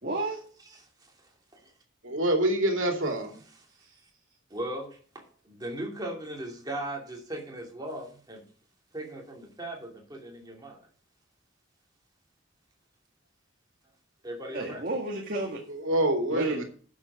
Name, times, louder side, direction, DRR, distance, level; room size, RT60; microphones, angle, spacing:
voice 1, 0.0-0.4 14.5-15.6 16.3-16.6, right 2 dB, 45° right, 0 dB, 1.8 m, -31 dB
voice 2, 2.0-3.4 15.7-16.6, right 1 dB, 75° right, 3 dB, 2.7 m, -26 dB
voice 3, 4.5-8.4 8.9-10.8 14.2-14.8, right 1 dB, 20° right, 0 dB, 2.7 m, -38 dB
11.0 x 7.3 x 4.9 m, 0.43 s
head